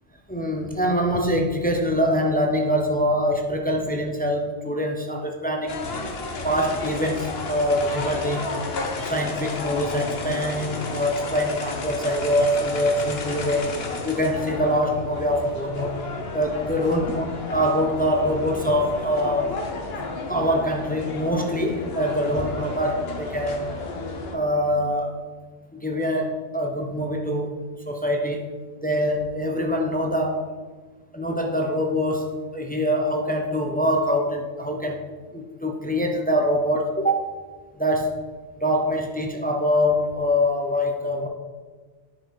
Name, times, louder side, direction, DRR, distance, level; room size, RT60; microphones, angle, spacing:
voice 1, 0.3-5.8 6.4-8.6 9.1-13.7 14.0-16.0 16.3-17.2 17.5-19.6 20.3-23.7 24.3-25.2 25.7-28.5 28.8-30.4 31.1-35.0 35.3-37.3 37.8-38.2 38.6-41.3, equal, 10° left, 2 dB, 0.4 m, -24 dB
sound 1, 5.7-24.4, left 3 dB, 65° left, 1.1 m, -32 dB
9.7 x 4.5 x 4.6 m, 1.4 s
omnidirectional pair, 1.1 m